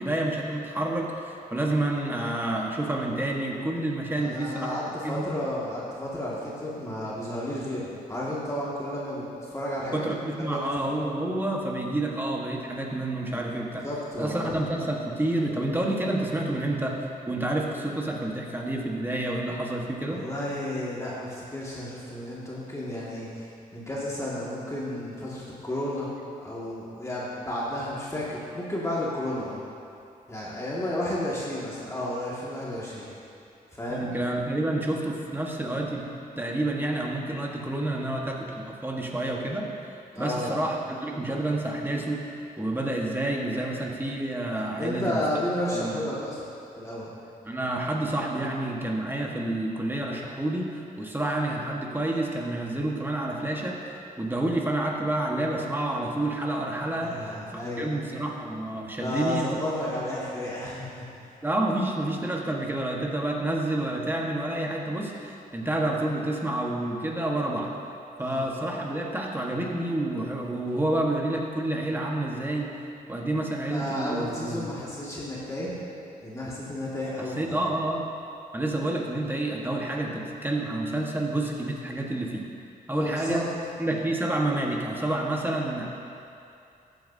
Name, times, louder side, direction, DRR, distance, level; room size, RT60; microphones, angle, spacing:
voice 1, 0.0-4.8 5.0-5.3 9.9-13.9 14.2-17.0 17.3-20.2 33.9-36.1 36.4-39.7 40.2-42.2 42.6-45.2 45.7-46.0 47.4-59.6 61.4-67.7 68.2-72.7 73.1-74.7 77.2-78.1 78.5-82.5 82.9-83.4 83.8-85.9, right 1 dB, 15° right, -1 dB, 1.4 m, -29 dB
voice 2, 4.2-10.1 10.5-10.6 13.8-14.6 20.1-23.5 23.7-26.1 26.4-29.6 30.3-33.1 33.7-34.1 40.1-40.5 44.8-46.4 46.8-47.1 57.0-57.9 59.0-61.1 68.2-68.5 73.7-75.8 76.2-77.7 82.9-83.5, left 1 dB, 20° left, -7 dB, 2.1 m, -32 dB
14.0 x 8.9 x 2.8 m, 2.6 s
cardioid pair, 85°, 16 cm